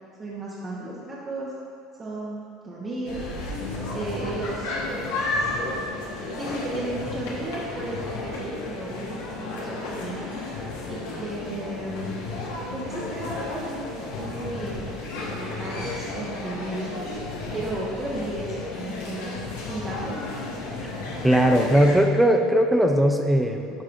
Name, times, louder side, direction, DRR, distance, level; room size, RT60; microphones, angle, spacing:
voice 1, 0.2-1.5 2.0-3.3 3.9-5.5 6.3-10.3 10.9-12.2 12.7-13.8 14.2-14.9 15.2-17.0 17.5-19.3 19.7-20.3, right 1 dB, 25° right, -7 dB, 1.0 m, -34 dB
sound 1, 3.1-22.0, left 2 dB, 85° left, 1.3 m, -33 dB
voice 2, 21.2-23.8, equal, 5° right, 4 dB, 0.5 m, -19 dB
10.5 x 4.7 x 2.5 m, 2.3 s
supercardioid pair, 110°, 0 cm